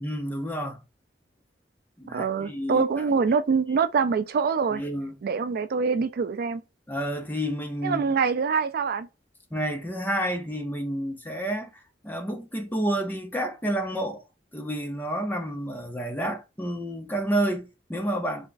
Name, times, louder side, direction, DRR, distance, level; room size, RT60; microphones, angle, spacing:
voice 1, 0.0-0.8 2.0-3.1 4.7-5.2 6.9-8.1 9.5-14.2 14.5-18.5, right 1 dB, 10° left, 0.6 m, -30 dB
voice 2, 2.1-4.8 5.2-6.6 7.8-9.1, right 5 dB, 55° right, 0.4 m, -25 dB
3.5 x 2.4 x 3.9 m
head